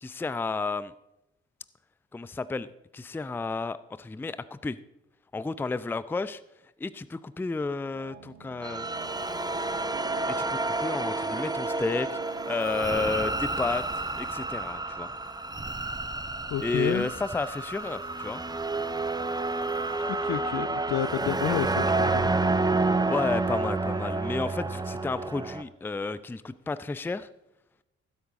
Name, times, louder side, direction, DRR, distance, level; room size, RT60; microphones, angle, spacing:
voice 1, 0.0-0.9 2.1-2.7 2.9-4.8 5.3-6.4 6.8-8.9 10.3-13.8 14.2-15.1 16.6-18.4 23.1-27.3, left 3 dB, 5° left, 16 dB, 0.5 m, -32 dB
sound 1, 7.9-13.4, right 11 dB, 75° right, 1.2 m, -47 dB
sound 2, 8.6-25.6, right 3 dB, 10° right, 0.9 m, -29 dB
voice 2, 16.5-17.1 20.1-22.4 22.8-22.9, left 11 dB, 50° left, 15 dB, 0.7 m, -30 dB
14.5 x 12.5 x 3.7 m, 0.89 s
figure-of-eight pair, 40°, 36 cm